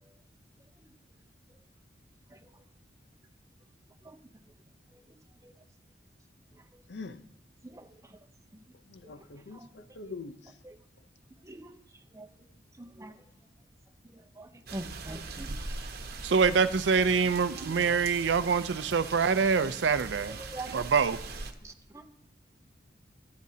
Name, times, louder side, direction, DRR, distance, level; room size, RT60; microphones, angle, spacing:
voice 1, 6.9-7.2 8.9-10.5, left 4 dB, 70° left, 0.6 m, -43 dB
voice 2, 12.8-13.1 14.4-15.5 17.6-17.8 20.3-20.8 21.6-21.7, right 2 dB, 15° right, 0.7 m, -42 dB
sound 1, 14.7-21.5, right 3 dB, 55° right, 1.0 m, -41 dB
voice 3, 16.2-20.4 20.7-21.2, right 5 dB, 80° right, 0.5 m, -25 dB
23.5 x 9.5 x 2.8 m
head